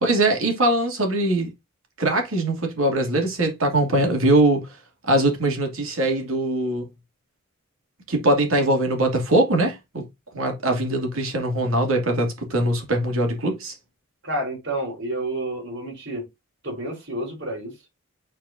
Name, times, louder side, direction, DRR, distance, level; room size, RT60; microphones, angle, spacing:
voice 1, 0.0-1.5 2.0-4.6 5.1-6.9 8.1-10.0 10.3-13.7, right 1 dB, 75° right, 2.7 m, -21 dB
voice 2, 14.2-16.3 16.6-17.7, right 1 dB, 55° right, 4.3 m, -29 dB
8.6 x 4.5 x 2.7 m
head